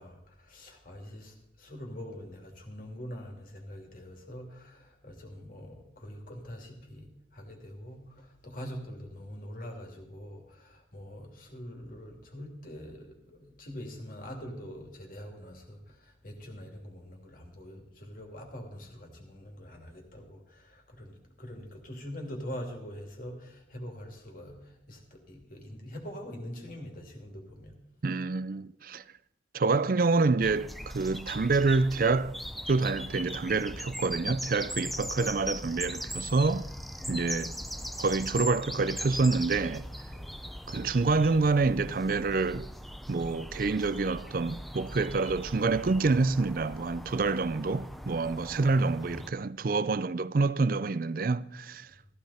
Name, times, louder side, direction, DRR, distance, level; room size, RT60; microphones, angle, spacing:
voice 1, 0.0-27.8 37.0-37.1 40.1-40.4, equal, 45° left, 2.8 m, -44 dB
voice 2, 28.0-29.0 29.5-32.4 32.7-36.7 37.1-37.5 38.0-39.9 40.7-42.7 43.1-51.9, right 3 dB, 45° right, 0.4 m, -27 dB
sound 1, 30.4-49.3, equal, ahead, 0.5 m, -40 dB
15.0 x 14.5 x 4.3 m
head